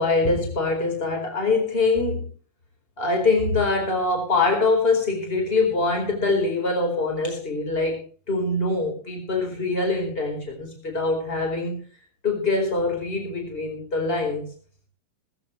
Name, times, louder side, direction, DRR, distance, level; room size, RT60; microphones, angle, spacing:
voice 1, 0.0-2.3 3.0-8.0 8.3-11.8 12.2-14.4, left 3 dB, 15° left, 3 dB, 4.4 m, -24 dB
18.5 x 15.0 x 3.2 m, 0.39 s
omnidirectional pair, 4.4 m